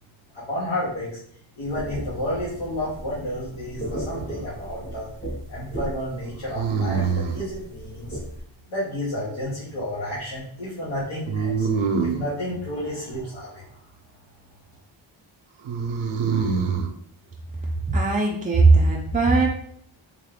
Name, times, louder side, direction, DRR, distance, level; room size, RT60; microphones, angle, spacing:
voice 1, 0.3-1.2 1.6-5.1 5.5-8.2 8.7-11.7 12.0-13.7, left 1 dB, 85° left, -8 dB, 1.1 m, -31 dB
sound 1, 1.6-8.4, right 1 dB, 25° left, 0.8 m, -36 dB
sound 2, 3.8-4.5 6.5-7.5 11.3-12.3 15.6-16.9, right 5 dB, 80° right, 0.5 m, -25 dB
voice 2, 17.9-19.5, right 3 dB, 20° right, -2 dB, 0.3 m, -18 dB
3.5 x 2.4 x 3.5 m, 0.63 s
wide cardioid pair, 145°, 47 cm